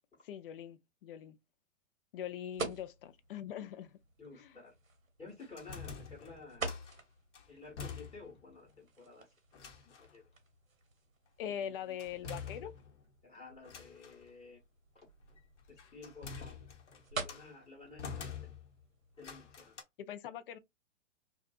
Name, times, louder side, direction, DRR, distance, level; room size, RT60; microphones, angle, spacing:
voice 1, 0.2-1.4 2.1-4.0 4.4-4.6 11.4-12.7 18.1-18.3 20.0-20.6, left 9 dB, 45° left, 0.4 m, -42 dB
sound 1, 2.5-19.5, right 3 dB, 85° right, 1.0 m, -48 dB
voice 2, 4.2-4.7 5.2-6.8 7.5-9.3 9.8-10.2 11.5-11.7 12.2-12.7 13.2-14.6 14.9-15.1 15.7-16.6 17.1-18.6 19.2-19.7, left 3 dB, 15° left, 1.0 m, -53 dB
sound 2, 5.4-7.0 7.3-8.5 8.8-8.9 9.5-10.1 12.0-13.1 13.6-14.2 15.4-17.5 18.0-18.8 19.2-19.8, left 6 dB, 60° left, 1.0 m, -47 dB
2.6 x 2.4 x 2.3 m
figure-of-eight pair, 110°, 39 cm